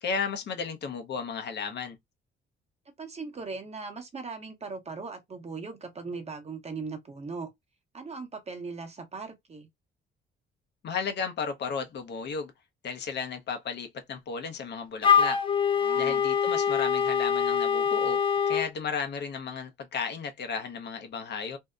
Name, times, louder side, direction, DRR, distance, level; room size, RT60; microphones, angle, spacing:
voice 1, 0.0-2.0 10.8-12.5 12.8-15.4 16.0-18.2 18.5-21.6, left 5 dB, 60° left, 0.8 m, -34 dB
voice 2, 3.0-7.5 7.9-9.7 15.8-16.2, right 4 dB, 35° right, 0.9 m, -39 dB
Wind instrument woodwind instrument, 15.0-18.7, left 7 dB, 25° left, 0.5 m, -24 dB
2.7 x 2.1 x 2.3 m
cardioid pair, 90°, 20 cm